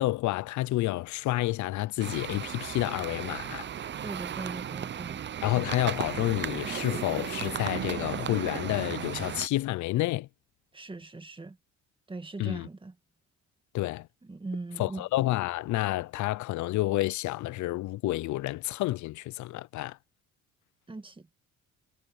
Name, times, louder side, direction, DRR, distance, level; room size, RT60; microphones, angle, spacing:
voice 1, 0.0-3.7 5.4-10.3 12.4-12.7 13.7-14.1 14.8-20.0, left 17 dB, 75° left, 0.5 m, -29 dB
sound 1, 2.0-9.5, right 9 dB, 40° right, 0.6 m, -35 dB
voice 2, 4.0-5.2 10.7-11.6 12.1-12.9 14.3-15.1 20.9-21.3, right 3 dB, 15° right, 2.0 m, -40 dB
cardioid pair, 120°, 29 cm